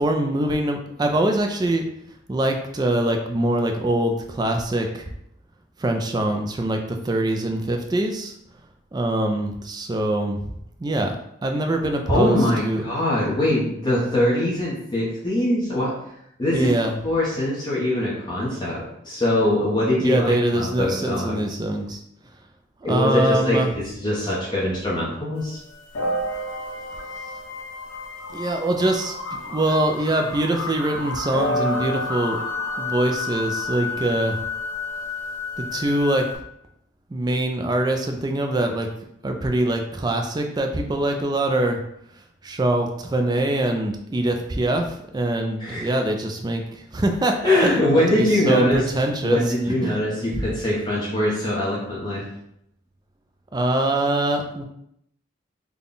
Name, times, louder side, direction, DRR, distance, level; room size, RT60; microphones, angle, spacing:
voice 1, 0.0-1.8 2.3-5.1 5.8-8.3 8.9-10.4 10.8-11.2 11.4-12.8 16.5-17.0 20.0-22.0 22.9-23.7 28.3-32.4 32.8-34.4 35.7-36.3 37.1-38.9 39.2-41.8 42.4-49.4 49.8-50.5 53.5-54.6, right 1 dB, 20° right, 4 dB, 0.3 m, -23 dB
voice 2, 12.1-15.9 16.4-16.7 17.0-21.6 22.8-25.6 45.6-45.9 47.4-48.9 49.2-52.2, left 1 dB, 20° left, -7 dB, 0.8 m, -22 dB
sound 1, 25.4-36.4, left 2 dB, 85° left, 0.7 m, -30 dB
3.6 x 2.2 x 3.8 m, 0.75 s
head